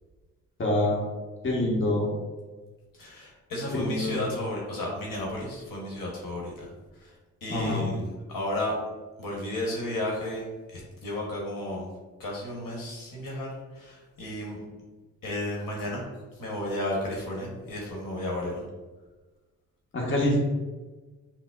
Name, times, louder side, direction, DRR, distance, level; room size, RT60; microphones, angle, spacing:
voice 1, 0.6-1.0 1.4-2.1 3.8-4.2 7.5-7.8 19.9-20.4, left 1 dB, 30° left, -3 dB, 1.1 m, -25 dB
voice 2, 3.0-6.7 7.4-8.7 9.2-10.4 10.7-11.9 12.2-14.6 15.2-16.0 16.4-18.6, left 1 dB, 55° left, -2 dB, 1.1 m, -33 dB
5.7 x 2.0 x 2.4 m, 1.3 s
hypercardioid pair, 40°, 41 cm